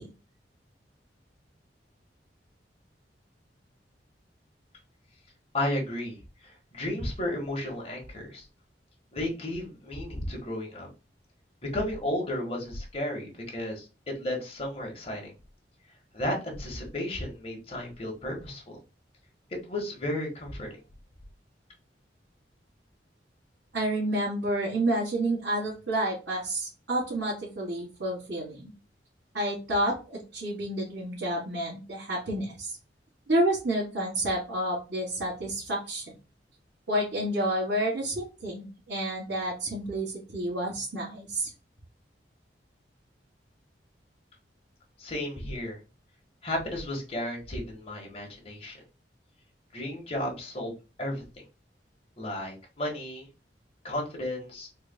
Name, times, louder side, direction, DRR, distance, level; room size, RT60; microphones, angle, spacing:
voice 1, 5.5-8.5 9.1-10.9 11.7-15.3 16.1-18.8 19.5-20.7 45.0-45.8 46.4-48.8 49.7-50.7 51.0-51.2 52.2-53.3 53.8-54.7, left 1 dB, 35° left, -1 dB, 1.5 m, -33 dB
voice 2, 23.7-28.7 29.3-32.8 33.3-36.0 36.9-41.5, right 1 dB, 80° right, -7 dB, 2.0 m, -29 dB
4.5 x 3.2 x 2.2 m, 0.30 s
head